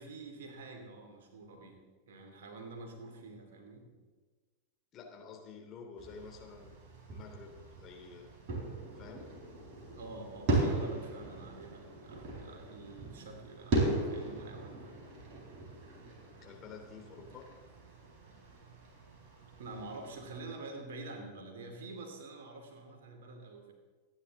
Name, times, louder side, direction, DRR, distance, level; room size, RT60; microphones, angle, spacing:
voice 1, 0.0-4.0 9.9-14.9 19.6-23.7, right 2 dB, 60° right, 4 dB, 2.7 m, -47 dB
voice 2, 4.9-6.7 7.1-8.3 9.0-9.3 16.4-17.5, left 5 dB, 30° left, 1 dB, 3.0 m, -50 dB
sound 1, 6.0-20.4, right 2 dB, 45° right, 4.1 m, -38 dB
27.0 x 9.8 x 3.7 m, 1.4 s
figure-of-eight pair, 90°, 0 cm